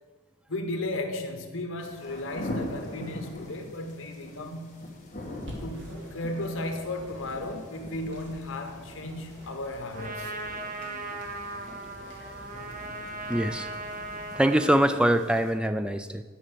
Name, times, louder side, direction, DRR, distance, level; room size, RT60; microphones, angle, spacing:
voice 1, 0.5-4.9 5.6-10.3, left 1 dB, 80° left, 5 dB, 1.1 m, -35 dB
sound 1, 1.8-15.5, left 1 dB, 40° left, 1.5 m, -43 dB
sound 2, 5.4-14.3, equal, 60° right, 2.1 m, -47 dB
Trumpet, 9.9-14.9, right 2 dB, 40° right, 0.9 m, -38 dB
voice 2, 13.3-13.7 14.3-16.2, right 1 dB, 5° right, 9 dB, 0.3 m, -23 dB
9.9 x 5.4 x 6.4 m, 1.4 s
head